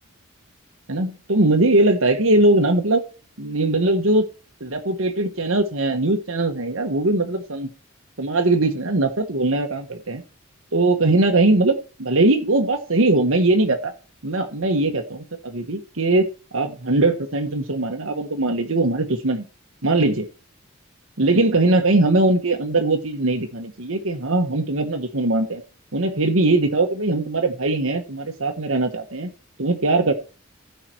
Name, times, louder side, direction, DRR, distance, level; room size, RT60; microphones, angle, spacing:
voice 1, 0.9-3.0 3.4-4.2 4.6-7.7 8.2-10.2 10.7-13.9 14.2-16.3 16.5-19.4 19.8-20.3 21.2-25.6 25.9-29.3 29.6-30.1, right 2 dB, 75° right, 4 dB, 1.5 m, -20 dB
15.0 x 5.8 x 4.7 m, 0.34 s
head